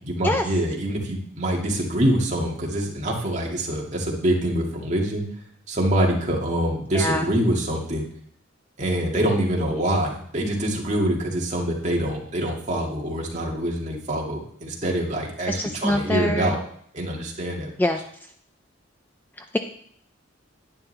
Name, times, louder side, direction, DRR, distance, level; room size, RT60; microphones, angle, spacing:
voice 1, 0.0-5.2 5.7-8.1 8.8-16.6 16.9-17.7, right 1 dB, 35° right, -2 dB, 2.1 m, -25 dB
voice 2, 6.9-7.3 15.5-16.6 17.8-18.0 19.4-19.6, left 1 dB, 10° left, 6 dB, 0.4 m, -24 dB
11.0 x 9.7 x 3.4 m, 0.65 s
head